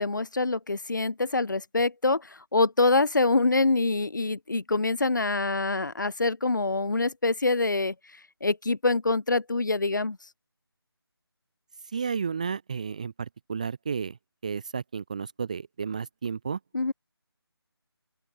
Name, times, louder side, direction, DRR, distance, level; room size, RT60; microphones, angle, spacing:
voice 1, 0.0-7.9 8.4-10.2 16.7-16.9, left 3 dB, 45° left, 2.0 m, -25 dB
voice 2, 11.8-14.2 14.4-16.6, right 6 dB, 15° right, 0.9 m, -32 dB
open air
figure-of-eight pair, 160°, 14 cm